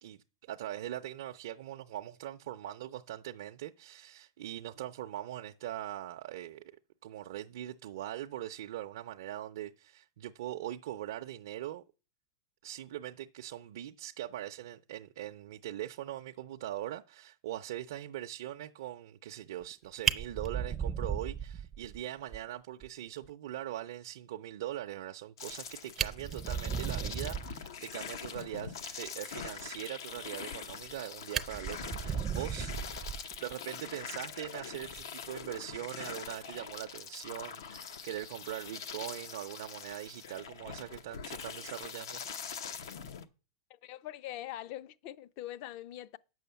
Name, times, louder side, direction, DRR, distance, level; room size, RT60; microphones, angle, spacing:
voice 1, 0.0-6.7 7.0-11.8 12.6-32.7 33.4-42.2, right 13 dB, 70° right, 0.5 m, -41 dB
Fire, 19.6-19.7 20.0-22.0 22.3-22.4 22.8-22.9 23.2-23.3 25.5-25.6 25.9-27.6 30.4-31.0 31.3-33.5 34.8-35.0, right 7 dB, 15° right, 0.5 m, -35 dB
sound 1, 25.4-43.2, left 7 dB, 85° left, 0.9 m, -43 dB
voice 2, 43.7-46.2, left 13 dB, 45° left, 0.5 m, -43 dB
9.0 x 6.3 x 6.9 m
supercardioid pair, 160°, 2 cm